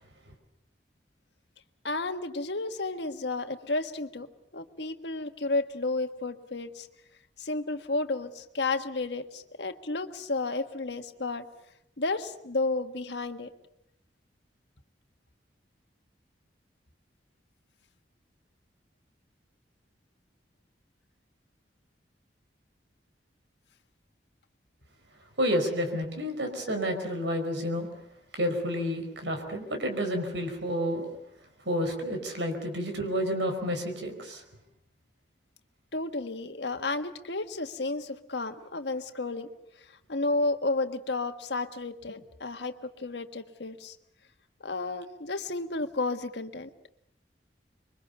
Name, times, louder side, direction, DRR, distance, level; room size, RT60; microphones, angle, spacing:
voice 1, 1.8-4.3 4.5-6.9 7.4-11.5 12.0-13.5 35.9-39.5 40.1-43.9 44.6-46.7, left 3 dB, 75° left, 8 dB, 1.5 m, -32 dB
voice 2, 25.4-27.9 28.3-31.1 31.6-34.4, equal, 90° right, 5 dB, 5.0 m, -30 dB
26.0 x 23.0 x 7.0 m, 0.77 s
head